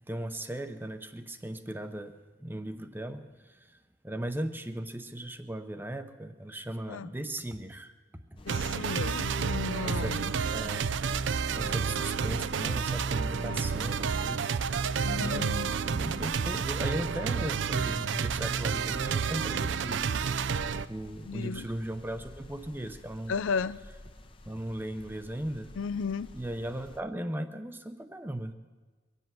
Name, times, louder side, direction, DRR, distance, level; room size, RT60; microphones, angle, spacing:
voice 1, 0.1-7.9 8.3-8.4 9.8-10.2 10.5-10.9 11.5-20.2 20.9-23.4 24.4-25.7 26.3-28.5, right 1 dB, 10° right, 9 dB, 0.7 m, -37 dB
sound 1, 8.4-27.0, left 1 dB, 25° left, 0.7 m, -48 dB
voice 2, 8.5-10.3 13.4-13.6 15.0-15.7 21.3-21.6 23.3-23.8 25.8-26.3, left 5 dB, 75° left, 16 dB, 0.4 m, -34 dB
sound 2, 8.5-20.9, right 6 dB, 65° right, 0.4 m, -30 dB
23.0 x 8.2 x 7.5 m, 1.3 s
head